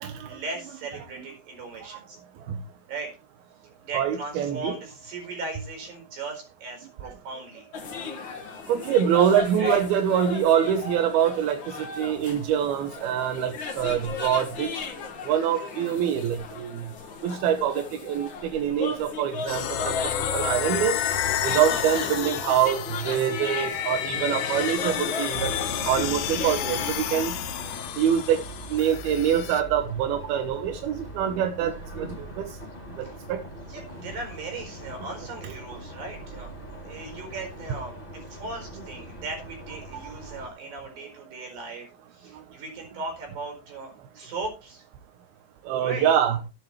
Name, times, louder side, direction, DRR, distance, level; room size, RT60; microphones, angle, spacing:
voice 1, 0.2-2.2 2.9-3.1 3.8-7.6 9.6-9.8 32.1-32.2 33.7-36.5 36.9-41.9 42.1-44.8 45.8-46.1, right 3 dB, 55° right, 3 dB, 6.3 m, -37 dB
voice 2, 3.9-4.7 7.0-7.1 8.7-11.6 12.0-14.8 15.3-16.8 17.2-21.0 21.4-25.5 25.9-27.3 28.0-28.4 28.7-32.1 32.4-32.5 33.3-33.4 35.4-35.8 45.7-46.4, right 9 dB, 70° right, 7 dB, 2.7 m, -25 dB
sound 1, 7.7-26.9, left 5 dB, 55° left, 1.3 m, -36 dB
sound 2, 19.5-29.6, left 10 dB, 85° left, 1.8 m, -30 dB
sound 3, 25.3-40.5, right 1 dB, 15° left, 3.3 m, -41 dB
13.5 x 11.0 x 3.2 m, 0.30 s
omnidirectional pair, 5.0 m